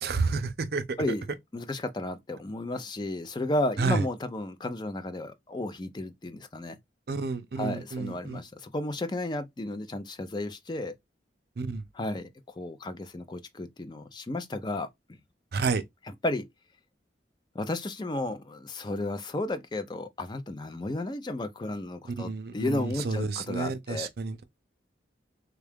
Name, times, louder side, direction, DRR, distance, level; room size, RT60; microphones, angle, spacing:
voice 1, 0.0-0.8 3.8-4.0 7.1-8.4 11.6-11.8 15.5-15.8 22.1-24.4, right 4 dB, 60° right, 0.5 m, -30 dB
voice 2, 1.5-6.8 7.6-11.0 11.9-12.3 12.6-14.9 16.2-16.5 17.5-24.1, left 2 dB, 25° left, 0.4 m, -33 dB
3.5 x 2.3 x 3.4 m
head